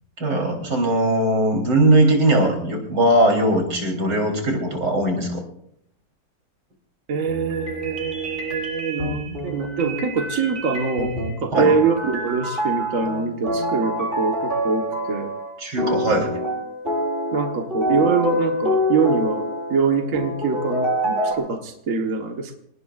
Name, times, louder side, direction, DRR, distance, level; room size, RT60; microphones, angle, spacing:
voice 1, 0.2-5.4 11.5-11.7 15.6-16.3, right 1 dB, 85° right, 0 dB, 4.5 m, -19 dB
voice 2, 7.1-11.1 11.4-15.3 17.3-22.6, right 5 dB, 50° right, 3 dB, 1.8 m, -24 dB
sound 1, 7.3-15.5 15.8-21.3, equal, 30° right, 7.1 m, -26 dB
27.5 x 19.0 x 2.5 m, 0.73 s
omnidirectional pair, 1.9 m